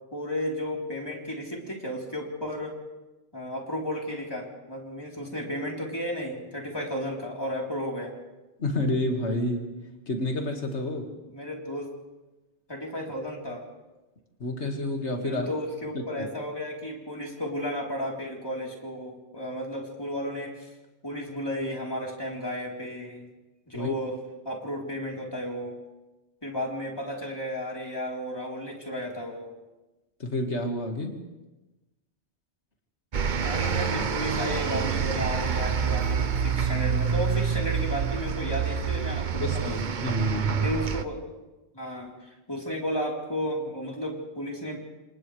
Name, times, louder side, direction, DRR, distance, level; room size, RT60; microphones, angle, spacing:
voice 1, 0.1-2.7 3.3-8.1 11.3-11.9 12.7-13.6 15.2-20.7 21.0-23.3 23.7-24.1 24.4-25.8 26.4-29.5 33.4-39.8 40.6-41.2 41.7-44.8, equal, 20° left, -2 dB, 4.0 m, -33 dB
voice 2, 8.6-9.8 10.1-11.1 14.4-15.5 16.2-16.3 23.7-23.9 30.2-31.2 39.4-40.6, left 1 dB, 90° left, 2 dB, 2.4 m, -29 dB
sound 1, 33.1-41.0, right 6 dB, 50° right, 0.9 m, -27 dB
28.5 x 27.5 x 3.4 m, 1.1 s
omnidirectional pair, 1.1 m